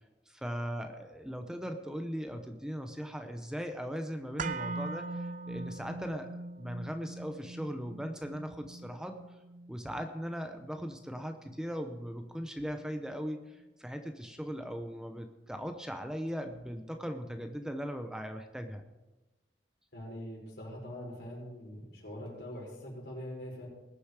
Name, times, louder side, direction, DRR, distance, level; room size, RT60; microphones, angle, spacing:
voice 1, 0.3-9.2 9.7-18.8, equal, 5° right, 6 dB, 0.8 m, -39 dB
sound 1, 4.4-12.5 12.8-12.9, right 3 dB, 50° right, 0.5 m, -42 dB
voice 2, 19.9-23.7, equal, 75° left, -3 dB, 5.5 m, -43 dB
20.0 x 7.0 x 4.8 m, 1.0 s
head